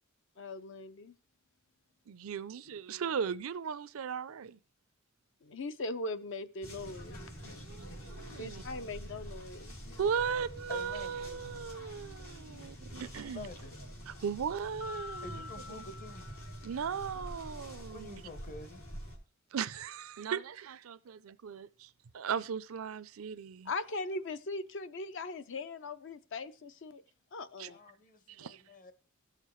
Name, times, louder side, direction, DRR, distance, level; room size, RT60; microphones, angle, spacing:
voice 1, 0.4-1.1 5.4-7.2 8.3-9.8 23.7-27.0 27.3-27.8, left 2 dB, 60° left, 0.6 m, -40 dB
voice 2, 2.1-4.6 7.6-8.6 10.0-13.5 14.1-15.5 16.6-18.2 19.5-23.7 27.6-27.7 28.3-28.6, right 7 dB, 75° right, 0.5 m, -37 dB
sound 1, 6.6-19.2, equal, 80° left, 3.2 m, -47 dB
voice 3, 10.7-11.3 13.3-13.8 15.2-16.3 17.9-18.8 27.6-28.9, left 2 dB, 40° left, 0.9 m, -48 dB
Mallet percussion, 14.8-17.2, left 4 dB, 5° right, 0.4 m, -47 dB
16.5 x 6.6 x 3.1 m
head